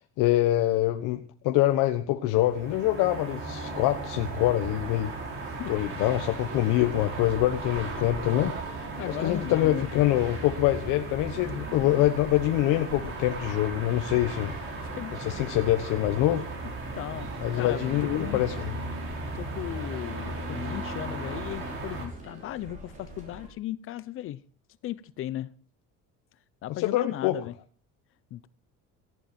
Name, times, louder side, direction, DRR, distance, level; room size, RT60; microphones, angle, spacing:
voice 1, 0.2-5.1 5.7-8.6 9.1-14.5 15.2-16.4 17.4-18.8 26.8-27.4, left 14 dB, 75° left, 1.3 m, -25 dB
sound 1, 2.3-22.1, right 2 dB, 40° right, 5.8 m, -36 dB
sound 2, 3.5-23.5, right 1 dB, 25° right, 6.0 m, -46 dB
voice 2, 9.0-10.0 14.3-14.5 14.9-15.2 17.0-18.4 19.3-24.4 24.8-25.5 26.6-27.5 28.3-28.5, left 13 dB, 40° left, 0.7 m, -36 dB
18.0 x 15.0 x 4.4 m
cardioid pair, 180°, 32 cm